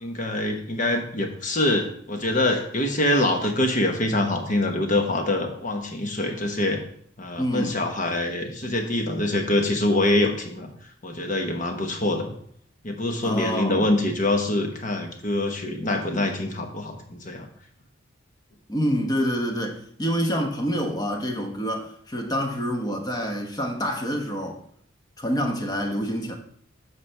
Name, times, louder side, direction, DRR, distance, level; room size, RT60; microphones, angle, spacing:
voice 1, 0.0-6.8 7.2-10.7 11.0-12.3 12.8-17.5, left 1 dB, 40° left, 1.1 m, -25 dB
voice 2, 7.4-7.8 13.2-13.9 18.7-24.6 25.2-26.3, equal, 20° left, 0.9 m, -27 dB
8.2 x 6.2 x 3.4 m
head